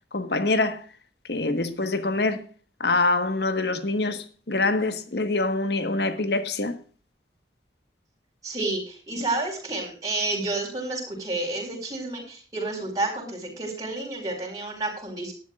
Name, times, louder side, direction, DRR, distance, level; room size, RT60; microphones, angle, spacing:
voice 1, 0.1-0.8 1.3-2.4 2.8-6.8, left 2 dB, 65° left, 1.5 m, -25 dB
voice 2, 8.4-15.3, right 2 dB, 20° right, 4.9 m, -30 dB
18.5 x 11.5 x 2.5 m
head